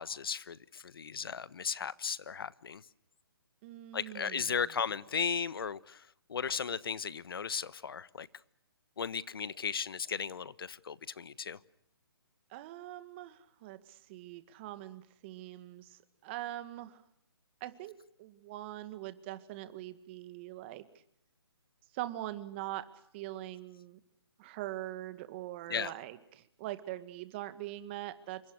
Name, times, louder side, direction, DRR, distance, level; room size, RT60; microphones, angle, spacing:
voice 1, 0.0-2.8 3.9-8.3 9.0-11.6 25.7-25.9, left 6 dB, 65° left, 1.2 m, -36 dB
voice 2, 3.6-4.4 12.5-17.0 17.6-17.9 18.2-20.9 21.9-22.8 23.1-24.0 24.4-28.4, right 15 dB, 30° right, 2.0 m, -42 dB
28.0 x 24.0 x 6.4 m
hypercardioid pair, 155°, 13 cm